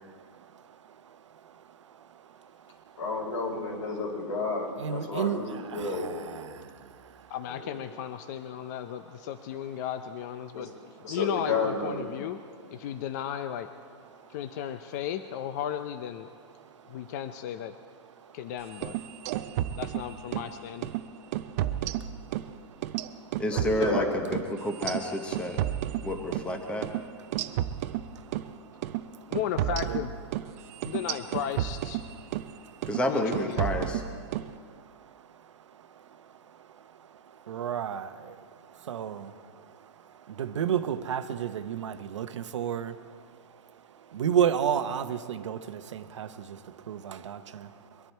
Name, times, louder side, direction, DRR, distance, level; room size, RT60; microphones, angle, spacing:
voice 1, 0.0-3.0 4.8-7.3 10.5-10.6 12.8-12.9 14.1-14.6 16.6-17.1 18.2-18.4 19.1-19.8 21.0-23.4 26.0-26.1 27.3-29.4 29.9-30.0 30.5-30.9 32.2-32.9 34.3-48.1, right 8 dB, 80° right, 0.9 m, -35 dB
voice 2, 3.0-6.1 7.5-7.9 10.5-10.7 11.0-12.1 23.5-24.1, left 3 dB, 85° left, 5.0 m, -31 dB
voice 3, 7.3-10.7 11.0-12.4 12.7-13.7 14.3-16.3 16.9-17.7 18.3-18.9 19.8-20.9 29.3-30.1 30.8-32.0 33.1-33.6, left 10 dB, 35° left, 0.5 m, -35 dB
sound 1, 18.7-20.5 20.8-21.0 21.3-22.5 22.8-26.5 26.8-27.0 27.3-28.5 28.8-29.0 29.3-32.5 32.8-33.1 33.3-34.5, right 12 dB, 35° right, 0.5 m, -32 dB
voice 4, 23.4-25.6 26.0-26.9 32.9-34.0, left 1 dB, 5° left, 0.9 m, -30 dB
23.0 x 11.0 x 4.5 m
hypercardioid pair, 160°, 15 cm